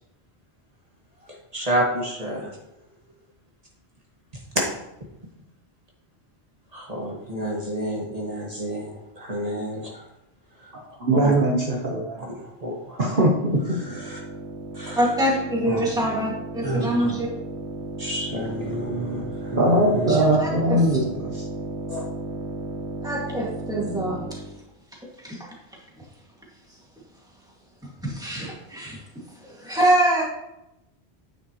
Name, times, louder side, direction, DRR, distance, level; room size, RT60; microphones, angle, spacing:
voice 1, 1.5-2.5 6.7-10.0 11.1-11.3 12.6-13.0 13.9-14.2 14.7-15.0 15.7-15.8 16.6-17.1 18.0-20.2 20.5-20.6 21.9-22.0, right 1 dB, 35° right, -3 dB, 1.9 m, -29 dB
voice 2, 10.7-12.2 13.0-13.8 19.6-21.4, right 1 dB, 50° right, -3 dB, 1.3 m, -21 dB
sound 1, 13.5-24.6, right 2 dB, 85° right, 1.5 m, -34 dB
voice 3, 15.0-17.3 20.1-20.9 23.0-24.4 25.2-25.5 28.0-29.0 29.4-30.2, right 1 dB, 5° right, -4 dB, 2.1 m, -25 dB
9.4 x 7.4 x 3.1 m, 0.86 s
omnidirectional pair, 1.1 m